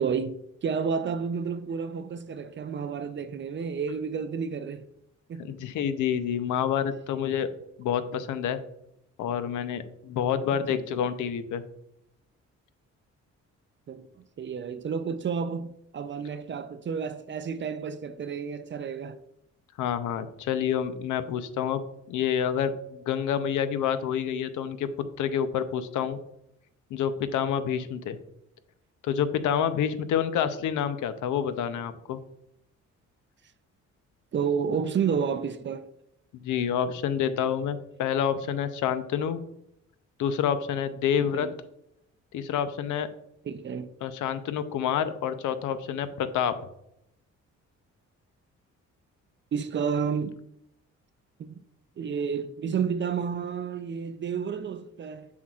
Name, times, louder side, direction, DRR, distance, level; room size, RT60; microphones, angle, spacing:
voice 1, 0.0-4.8 5.3-5.6 10.7-10.8 13.9-14.0 14.4-19.2 34.3-35.9 41.2-41.5 43.5-43.9 49.5-50.3 51.4-51.6 52.0-55.3, right 6 dB, 40° right, 0.5 m, -30 dB
voice 2, 5.4-7.5 7.8-8.6 9.2-11.6 19.8-24.9 25.2-26.2 26.9-28.2 29.0-32.2 36.4-39.4 40.2-41.5 42.3-43.1 44.0-46.5, left 8 dB, 80° left, 0.7 m, -28 dB
7.1 x 6.2 x 2.4 m
cardioid pair, 90°, 30 cm